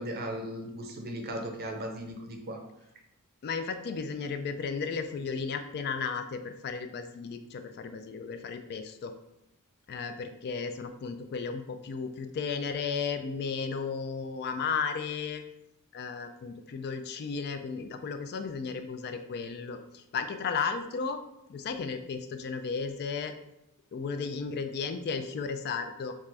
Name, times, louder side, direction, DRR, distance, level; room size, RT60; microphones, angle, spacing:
voice 1, 0.0-2.6, right 1 dB, 45° right, 3 dB, 0.6 m, -37 dB
voice 2, 3.4-9.1 9.9-15.4 15.9-21.2 21.5-23.3 23.9-26.1, left 5 dB, 45° left, 8 dB, 0.3 m, -34 dB
4.3 x 2.5 x 3.4 m, 0.85 s
head